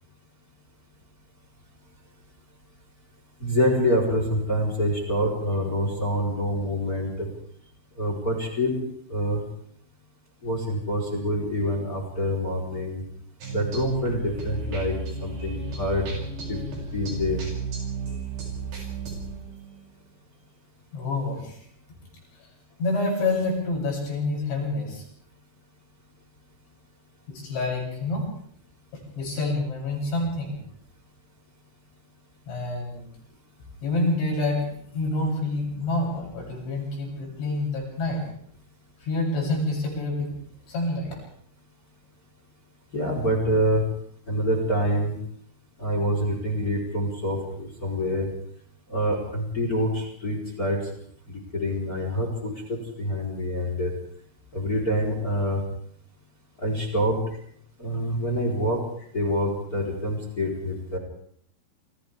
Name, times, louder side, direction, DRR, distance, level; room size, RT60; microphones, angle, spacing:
voice 1, 3.4-7.1 8.0-8.8 9.1-9.4 10.4-13.0 13.5-14.9 15.2-16.1 16.5-16.6 16.9-17.4 42.9-43.8 44.3-45.1 45.8-48.3 48.9-50.8 51.3-53.9 54.5-55.6 56.6-57.2 57.8-58.8 59.1-61.0, equal, 20° left, 0 dB, 4.1 m, -26 dB
sound 1, 13.4-19.9, right 3 dB, 70° right, 9.1 m, -33 dB
voice 2, 20.9-21.6 22.4-22.5 22.8-25.0 27.3-28.3 28.9-30.6 32.5-33.1 33.8-34.7 34.9-38.2 39.0-40.3 40.7-41.2 47.9-48.0, left 2 dB, 85° left, -2 dB, 10.5 m, -27 dB
29.0 x 27.5 x 3.6 m, 0.64 s
omnidirectional pair, 5.1 m